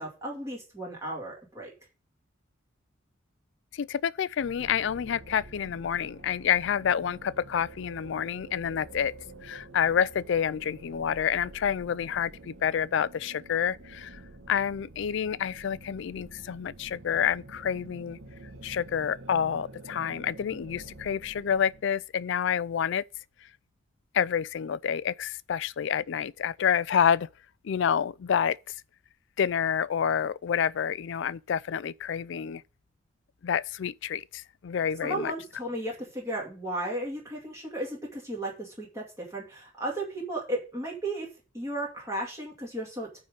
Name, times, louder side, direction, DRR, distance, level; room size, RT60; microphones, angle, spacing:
voice 1, 0.0-1.7 35.0-41.3 41.5-43.2, right 1 dB, 15° right, 2.4 m, -34 dB
voice 2, 3.7-9.1 9.4-14.2 14.5-18.2 18.6-23.1 24.1-27.3 27.6-28.6 29.4-32.6 33.4-35.3, left 8 dB, 60° left, 0.3 m, -28 dB
sound 1, 4.4-21.8, right 2 dB, 85° right, 1.3 m, -48 dB
9.4 x 3.8 x 6.5 m
head